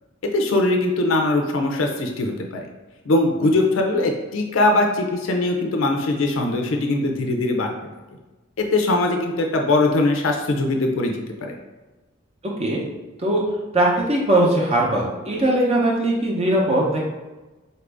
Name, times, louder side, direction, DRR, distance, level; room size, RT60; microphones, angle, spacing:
voice 1, 0.3-2.7 3.1-7.7 8.6-11.1 11.4-11.5, left 2 dB, 75° left, 3 dB, 0.5 m, -21 dB
voice 2, 13.2-17.0, right 1 dB, 30° right, -2 dB, 0.7 m, -20 dB
4.1 x 2.5 x 3.4 m, 1.1 s
head